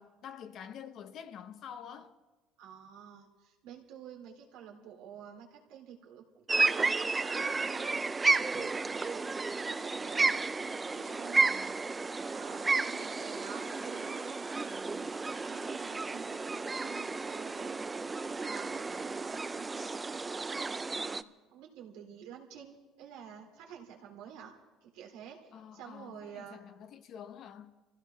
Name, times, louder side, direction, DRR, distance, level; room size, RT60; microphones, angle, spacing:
voice 1, 0.0-2.2 25.5-27.7, left 8 dB, 55° left, 0.9 m, -47 dB
voice 2, 2.6-8.1 8.3-9.2 9.5-10.5 10.9-11.8 12.3-17.8 18.4-19.9 20.9-24.5 24.8-26.6, right 8 dB, 85° right, 3.0 m, -50 dB
sound 1, 6.5-21.2, right 3 dB, 20° right, 0.4 m, -32 dB
26.0 x 15.5 x 3.5 m
cardioid pair, 110°, 0 cm